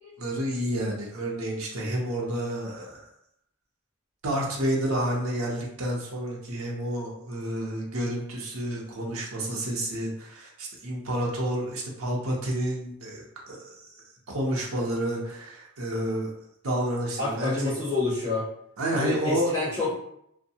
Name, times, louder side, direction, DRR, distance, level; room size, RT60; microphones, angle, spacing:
voice 1, 0.2-3.1 4.2-13.7 14.3-16.3 16.6-17.8 18.8-19.5, right 1 dB, 75° right, -2 dB, 0.7 m, -30 dB
voice 2, 17.2-18.5 18.9-20.0, left 3 dB, 30° right, -15 dB, 1.5 m, -28 dB
2.6 x 2.2 x 2.7 m, 0.75 s
head